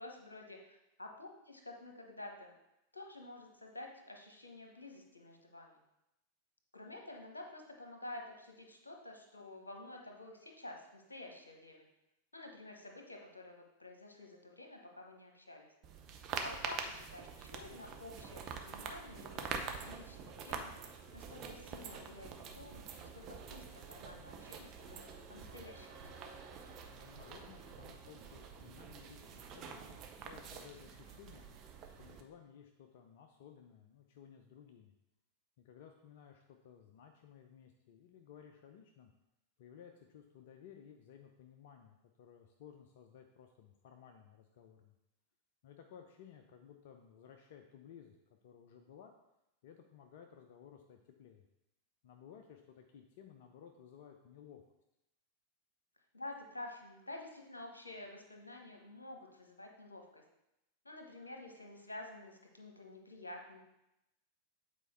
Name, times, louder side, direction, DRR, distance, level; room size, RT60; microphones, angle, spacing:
voice 1, 0.0-2.5 2.9-5.8 6.7-11.9 12.3-15.7 16.3-20.7 21.1-26.4 56.1-60.2 60.8-63.6, left 2 dB, 80° left, 2 dB, 1.2 m, -50 dB
sound 1, 15.8-32.2, right 6 dB, 35° right, 0.8 m, -46 dB
voice 2, 26.9-31.5 32.0-34.9 35.6-39.1 39.6-44.9 45.6-49.1 49.6-51.4 52.0-54.6, left 8 dB, 55° left, 4 dB, 0.6 m, -57 dB
8.2 x 4.5 x 4.4 m, 0.88 s
figure-of-eight pair, 90°, 0 cm